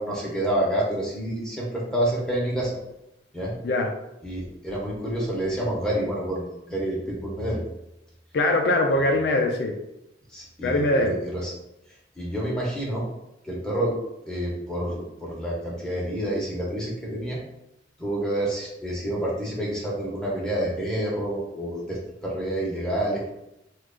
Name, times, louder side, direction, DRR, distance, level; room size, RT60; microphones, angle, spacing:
voice 1, 0.0-2.7 3.3-3.5 4.2-7.6 10.3-11.5 12.2-13.1 13.4-14.0 14.3-17.4 18.0-23.3, right 1 dB, 5° left, -5 dB, 0.9 m, -28 dB
voice 2, 8.3-9.7 10.6-11.1, left 1 dB, 65° left, 3 dB, 0.4 m, -22 dB
3.1 x 2.4 x 3.7 m, 0.87 s
head